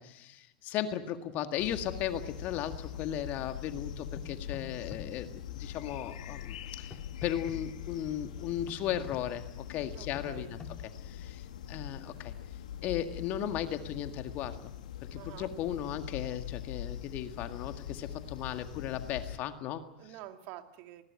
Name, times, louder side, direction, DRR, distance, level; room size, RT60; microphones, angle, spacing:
voice 1, 0.0-12.3 12.8-14.7 15.1-19.8, left 10 dB, 45° left, 8 dB, 1.9 m, -36 dB
sound 1, 1.6-19.4, left 10 dB, 70° left, 1.5 m, -43 dB
sound 2, 4.2-5.0 6.9-7.6 8.7-9.2 10.1-10.7, left 5 dB, 25° left, 2.3 m, -46 dB
voice 2, 9.9-10.5 15.1-15.5 20.0-21.0, right 13 dB, 50° right, 6 dB, 2.2 m, -48 dB
20.0 x 19.0 x 9.3 m, 0.90 s
hypercardioid pair, 95°, 4 cm